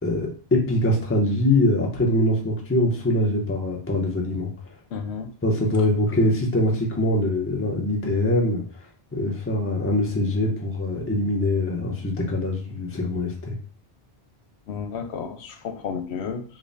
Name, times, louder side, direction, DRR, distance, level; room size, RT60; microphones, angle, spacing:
voice 1, 0.0-4.5 5.4-8.6 9.1-13.6, left 1 dB, 15° left, 0.6 m, -23 dB
voice 2, 4.9-5.3 14.7-16.4, left 6 dB, 85° left, 0.9 m, -32 dB
5.2 x 2.1 x 2.6 m
omnidirectional pair, 1.1 m